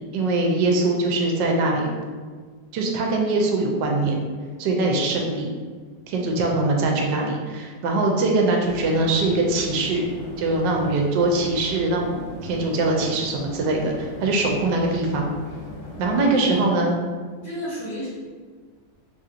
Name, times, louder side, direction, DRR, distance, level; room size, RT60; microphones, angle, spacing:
voice 1, 0.1-1.9 2.7-4.2 4.6-5.5 6.1-10.0 10.4-15.3 16.0-17.0, right 2 dB, 80° right, 0 dB, 1.2 m, -22 dB
sound 1, 8.6-16.3, left 2 dB, 65° left, 1.2 m, -39 dB
voice 2, 16.1-16.7 17.4-18.1, left 1 dB, 85° left, -13 dB, 2.1 m, -34 dB
4.7 x 2.7 x 2.5 m, 1.5 s
omnidirectional pair, 1.9 m